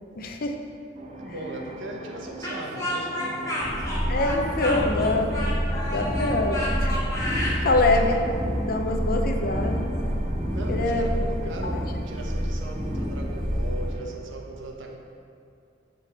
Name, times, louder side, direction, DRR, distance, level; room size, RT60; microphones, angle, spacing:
voice 1, 0.2-0.6 4.1-5.5 5.9-8.3 8.6-9.9 10.7-11.1 11.6-11.8, left 2 dB, 50° left, 3 dB, 0.7 m, -25 dB
sound 1, 0.9-14.3, right 2 dB, 35° right, 0.7 m, -41 dB
voice 2, 1.2-3.6 10.5-15.0, right 2 dB, 85° right, 1 dB, 1.0 m, -38 dB
Speech, 2.4-7.6, left 1 dB, 20° left, 1.5 m, -31 dB
sound 2, 3.6-13.9, equal, 5° right, 1.8 m, -28 dB
8.5 x 3.8 x 5.9 m, 2.5 s
head